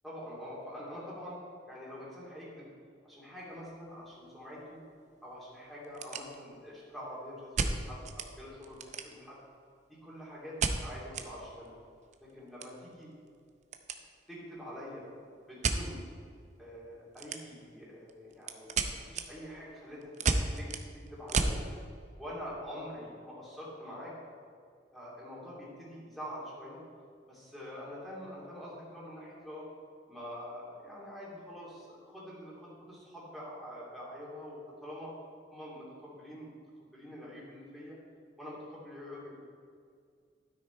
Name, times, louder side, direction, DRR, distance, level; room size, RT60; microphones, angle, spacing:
voice 1, 0.0-1.4 1.7-2.7 3.0-4.8 5.2-9.4 9.9-11.8 12.3-13.1 14.3-16.0 16.6-20.7 20.9-21.6 22.2-24.1 24.9-26.8 27.3-29.7 30.1-35.1 35.5-36.5 36.7-38.0 38.4-39.4, equal, ahead, -7 dB, 2.5 m, -45 dB
sound 1, 3.5-3.7 4.1-4.2 4.8-4.9 5.1-5.2 5.7-6.7 7.5-8.3 8.6-9.4 10.6-11.3 11.6-11.7 12.0-14.0 14.3-14.6 15.6-15.8 17.1-17.7 18.1-21.6, right 4 dB, 40° right, 0.6 m, -33 dB
12.0 x 6.4 x 4.4 m, 2.2 s
head